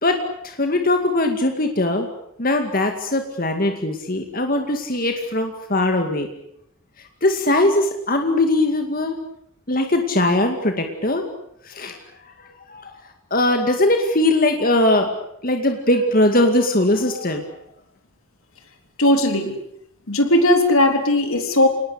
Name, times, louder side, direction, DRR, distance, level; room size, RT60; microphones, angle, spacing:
voice 1, 0.0-2.1 2.4-6.3 7.2-9.2 9.7-11.3 11.7-12.0 12.7-12.9 13.3-15.1 15.4-17.5, left 1 dB, 40° left, 5 dB, 2.2 m, -20 dB
voice 2, 19.0-19.5 20.1-21.7, left 1 dB, 75° left, 5 dB, 3.8 m, -17 dB
27.5 x 19.5 x 8.4 m, 0.77 s
head